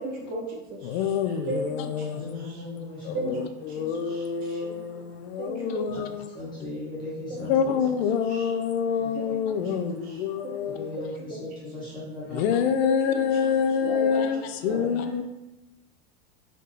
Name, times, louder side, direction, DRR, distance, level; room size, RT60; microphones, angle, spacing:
voice 1, 0.0-1.0 1.5-2.1 2.4-2.6 3.1-3.3 3.7-4.8 5.4-5.8 7.3-7.7 8.3-8.5 9.1-9.2 10.0-10.2 11.3-11.4 12.8-13.5 13.8-14.2 14.6-14.9, right 2 dB, 25° right, 0.8 m, -35 dB
voice 2, 0.8-2.5 3.0-6.3 7.4-11.0 12.3-15.2, left 7 dB, 75° left, 0.5 m, -27 dB
voice 3, 2.1-3.4 6.3-7.8 9.0-9.1 10.7-12.4 14.7-14.8, left 2 dB, 15° left, 1.2 m, -37 dB
4.1 x 2.7 x 3.2 m
supercardioid pair, 165°, 32 cm